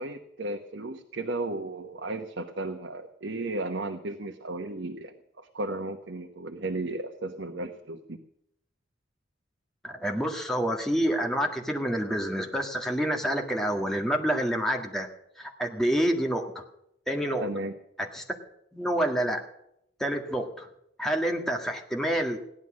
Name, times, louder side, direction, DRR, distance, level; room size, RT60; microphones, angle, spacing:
voice 1, 0.0-8.2 17.4-17.7, right 2 dB, 65° right, 5 dB, 1.1 m, -34 dB
voice 2, 9.8-15.1 15.4-16.6 17.1-17.5 18.0-18.2 18.7-19.4 20.0-20.7 21.0-22.4, equal, ahead, 1 dB, 1.7 m, -28 dB
16.5 x 11.0 x 6.3 m, 0.77 s
head